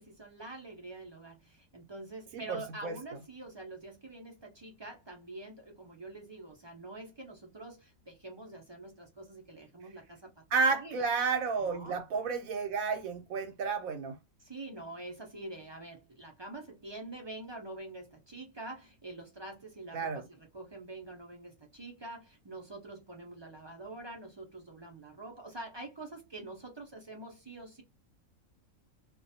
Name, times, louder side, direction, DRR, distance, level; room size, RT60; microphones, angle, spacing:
voice 1, 0.0-10.4 10.7-11.0 11.6-12.0 14.4-27.8, right 2 dB, 35° right, 0.4 m, -46 dB
voice 2, 2.3-3.0 10.5-14.2 19.9-20.3, right 4 dB, 80° right, 1.1 m, -31 dB
2.5 x 2.2 x 2.7 m
omnidirectional pair, 1.4 m